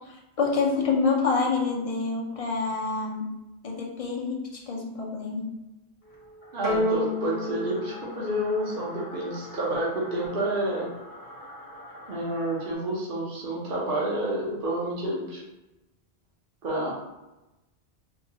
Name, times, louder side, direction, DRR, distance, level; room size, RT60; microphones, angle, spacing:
voice 1, 0.4-3.3 3.6-5.5, left 4 dB, 40° left, -1 dB, 0.6 m, -27 dB
sound 1, 6.0-12.7, equal, 65° left, 1.1 m, -45 dB
voice 2, 6.5-10.9 12.1-15.4 16.6-16.9, right 1 dB, 55° right, -5 dB, 1.0 m, -29 dB
sound 2, 6.6-9.2, equal, 25° right, 0.6 m, -30 dB
4.5 x 2.3 x 2.8 m, 1.0 s
omnidirectional pair, 1.1 m